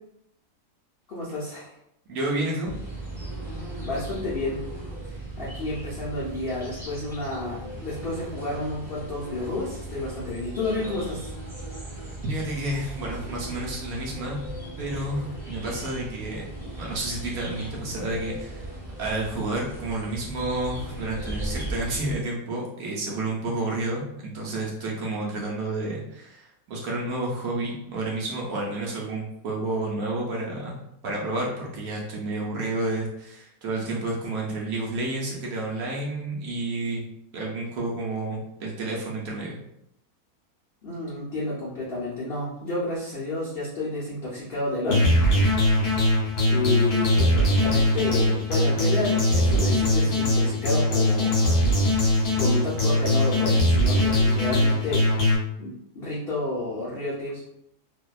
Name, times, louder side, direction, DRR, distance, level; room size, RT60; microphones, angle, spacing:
voice 1, 1.1-1.7 3.8-4.7 5.0-11.3 40.8-45.1 46.2-51.7 52.4-55.0 55.6-57.4, left 2 dB, 80° left, -7 dB, 0.5 m, -31 dB
voice 2, 2.1-2.7 12.2-14.4 14.8-16.5 16.8-18.7 19.0-30.8 31.0-37.0 37.3-39.6, right 2 dB, 70° right, -2 dB, 0.9 m, -30 dB
sound 1, 2.6-22.1, right 1 dB, 5° right, 0.4 m, -37 dB
sound 2, 44.9-55.4, left 1 dB, 55° left, 1.0 m, -21 dB
2.6 x 2.1 x 2.3 m, 0.80 s
omnidirectional pair, 1.7 m